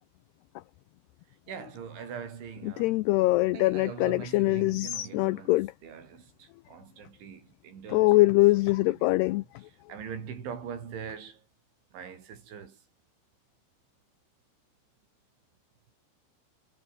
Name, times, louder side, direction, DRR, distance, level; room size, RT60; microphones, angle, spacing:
voice 1, 1.5-3.0 3.5-8.3 8.7-9.1 9.7-11.4 11.9-12.8, right 7 dB, 75° right, 6.8 m, -42 dB
voice 2, 2.8-5.7 7.9-9.4, left 20 dB, 85° left, 2.3 m, -23 dB
omnidirectional pair, 5.4 m